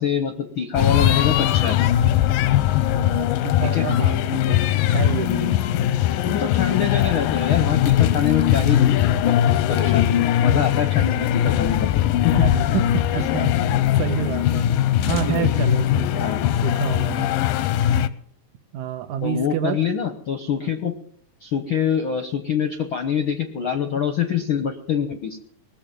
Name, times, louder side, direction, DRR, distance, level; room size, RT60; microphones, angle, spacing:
voice 1, 0.0-1.8 3.6-3.8 6.2-8.8 9.1-9.4 9.7-12.3 13.1-13.2 15.1-15.5 16.2-16.4 19.2-20.9 21.4-25.4, left 7 dB, 70° left, 7 dB, 1.2 m, -25 dB
sound 1, 0.7-18.1, left 11 dB, 90° left, 2.5 m, -20 dB
voice 2, 2.8-4.6 4.9-5.7 12.3-14.7 15.1-16.3 16.6-17.3 18.7-19.8, right 9 dB, 75° right, 9 dB, 2.2 m, -28 dB
20.5 x 7.2 x 9.1 m, 0.63 s
omnidirectional pair, 3.8 m